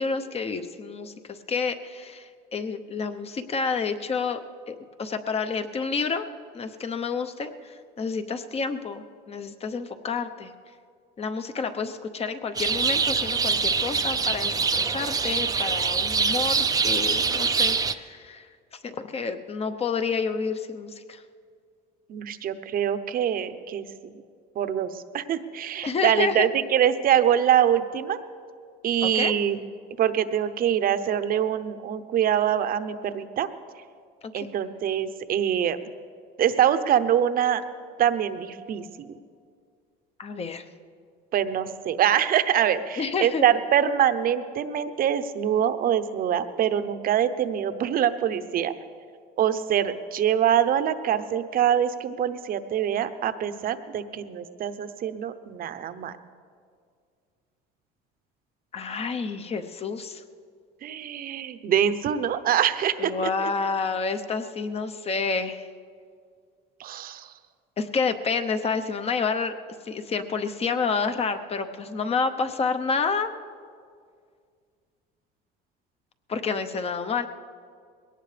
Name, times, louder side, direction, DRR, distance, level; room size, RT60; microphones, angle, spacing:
voice 1, 0.0-4.4 4.7-6.3 6.5-10.5 11.2-18.5 18.7-21.2 25.8-26.5 29.0-29.3 34.2-34.5 40.2-40.7 43.0-43.4 58.7-60.2 63.0-65.7 67.8-69.6 69.9-73.3 76.3-77.3, left 5 dB, 30° left, 8 dB, 0.8 m, -29 dB
sound 1, 12.6-17.9, right 5 dB, 20° right, 0.5 m, -24 dB
voice 2, 22.1-24.1 24.6-28.2 28.8-29.6 30.0-33.5 34.3-35.8 36.4-37.6 38.0-39.1 41.3-48.7 49.4-56.1 60.8-63.1 66.8-67.3, right 9 dB, 45° right, 11 dB, 0.8 m, -24 dB
21.0 x 18.0 x 3.4 m, 2.2 s
cardioid pair, 115°, 20 cm